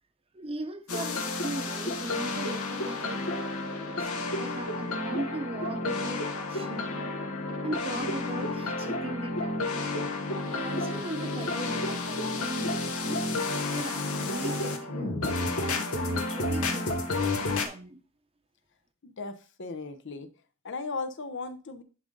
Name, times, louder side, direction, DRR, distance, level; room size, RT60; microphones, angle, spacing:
voice 1, 0.3-4.1 4.4-7.1 7.6-10.1 10.5-13.2 13.7-18.0, right 2 dB, 25° right, 0.8 m, -39 dB
sound 1, 0.9-17.7, left 2 dB, 80° left, 1.4 m, -31 dB
voice 2, 19.0-20.3 20.6-21.8, left 3 dB, 60° left, 0.8 m, -37 dB
11.0 x 3.9 x 3.8 m
head